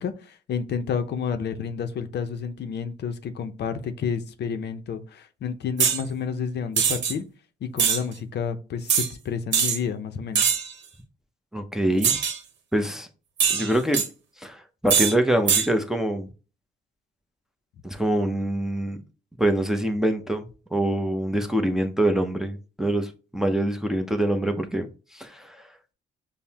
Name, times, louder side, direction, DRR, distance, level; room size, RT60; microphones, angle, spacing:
voice 1, 0.0-7.2 7.6-10.5, left 6 dB, 60° left, 0.5 m, -30 dB
sound 1, 5.8-6.0 6.8-7.1 7.8-8.0 8.9-9.1 9.5-9.8 10.3-10.7 12.0-12.4 13.4-14.1 14.9-15.1 15.5-15.7, right 7 dB, 65° right, 0.9 m, -22 dB
voice 2, 11.5-12.2 12.7-13.1 13.5-14.0 14.4-16.3 17.8-19.0 19.4-24.9 25.1-25.6, right 1 dB, ahead, 0.6 m, -25 dB
5.3 x 2.0 x 2.8 m
cardioid pair, 90°, 20 cm